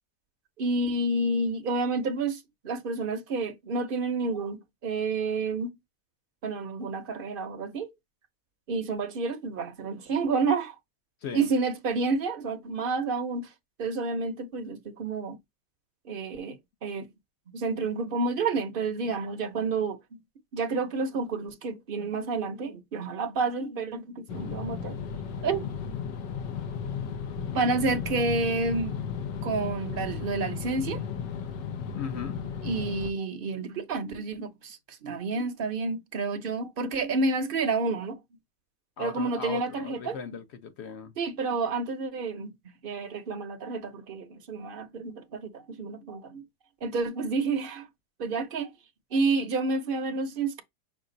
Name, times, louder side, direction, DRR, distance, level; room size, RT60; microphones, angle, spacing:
voice 1, 0.6-5.8 6.4-7.9 8.7-10.7 11.3-13.5 13.8-15.4 16.0-17.1 17.5-20.2 20.5-25.0 25.4-25.7 27.5-29.0 29.4-31.0 32.6-38.2 39.0-40.2 41.2-42.6 42.8-46.4 46.8-47.9 48.2-48.7 49.1-50.6, right 3 dB, 45° right, 0.7 m, -29 dB
sound 1, 24.3-33.1, left 6 dB, 90° left, 1.4 m, -34 dB
voice 2, 31.9-32.4 39.0-41.1, left 5 dB, 55° left, 0.7 m, -37 dB
5.9 x 2.3 x 3.9 m
omnidirectional pair, 1.9 m